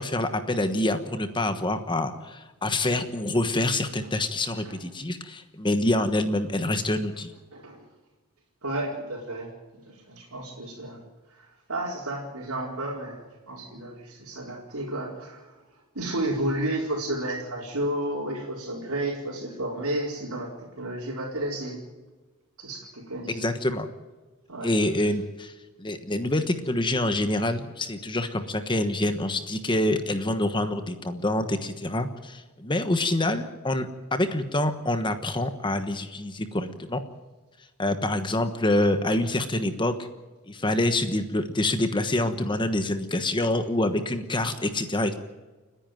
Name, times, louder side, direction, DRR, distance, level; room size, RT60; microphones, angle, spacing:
voice 1, 0.0-7.3 23.3-23.9 24.6-25.5 25.8-37.0 37.8-40.1 40.5-45.2, left 1 dB, 20° left, 8 dB, 1.2 m, -26 dB
voice 2, 7.5-7.8 8.6-11.0 11.3-15.5 15.9-21.8 22.6-23.5 24.5-25.1, right 1 dB, 80° right, -3 dB, 4.6 m, -32 dB
30.0 x 10.5 x 9.1 m, 1.2 s
head